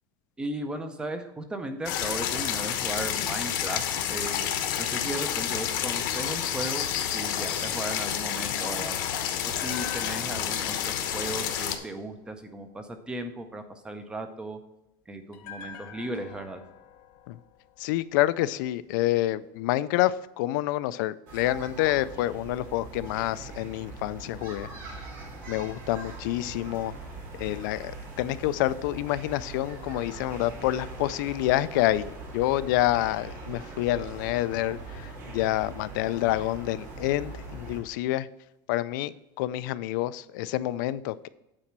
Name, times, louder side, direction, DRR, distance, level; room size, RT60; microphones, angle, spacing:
voice 1, 0.4-4.5 4.8-6.9 7.1-9.0 9.4-14.6 15.1-16.6, right 1 dB, 10° right, 0.6 m, -36 dB
sound 1, 1.9-11.8, left 10 dB, 90° left, 1.1 m, -29 dB
sound 2, 1.9-5.1 9.5-12.7 15.3-18.5 18.8-18.9, left 10 dB, 55° left, 0.9 m, -46 dB
voice 2, 17.8-24.7 25.5-26.9 27.4-38.3 38.7-39.1 39.4-41.3, left 15 dB, 70° left, 0.4 m, -28 dB
sound 3, 21.3-37.8, right 3 dB, 90° right, 2.9 m, -41 dB
8.8 x 4.2 x 6.0 m
cardioid pair, 180°, 11 cm